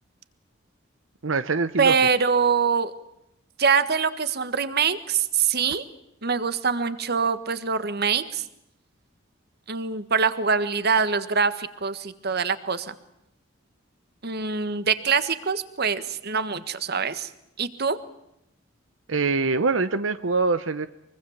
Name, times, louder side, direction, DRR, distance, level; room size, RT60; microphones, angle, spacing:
voice 1, 1.2-1.9 19.1-20.9, right 4 dB, 90° right, 12 dB, 0.9 m, -24 dB
voice 2, 1.8-2.9 3.6-5.8 6.2-8.4 9.7-12.9 14.2-17.3 17.6-18.0, right 5 dB, 55° right, 12 dB, 1.6 m, -24 dB
24.0 x 24.0 x 7.3 m, 0.80 s
head